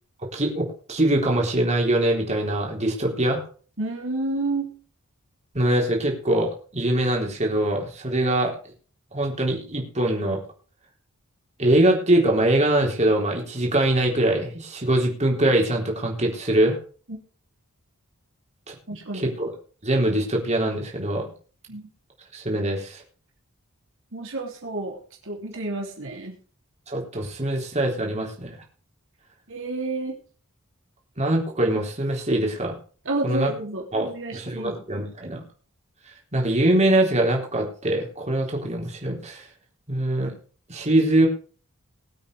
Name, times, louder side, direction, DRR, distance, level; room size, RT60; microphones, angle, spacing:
voice 1, 0.3-3.4 5.5-8.5 9.1-10.4 11.6-16.8 18.7-18.8 19.1-19.5 19.8-21.3 22.3-23.0 26.9-28.6 31.2-32.8 33.2-33.5 33.9-35.4 36.3-39.5 39.9-40.3 40.7-41.3, right 1 dB, 30° right, 0 dB, 3.8 m, -23 dB
voice 2, 3.8-4.7 17.1-17.2 18.9-19.3 21.7-21.9 24.1-25.0 25.2-26.4 29.5-30.2 33.0-34.8, right 2 dB, 60° right, 0 dB, 3.1 m, -30 dB
21.5 x 8.6 x 3.4 m, 0.40 s
head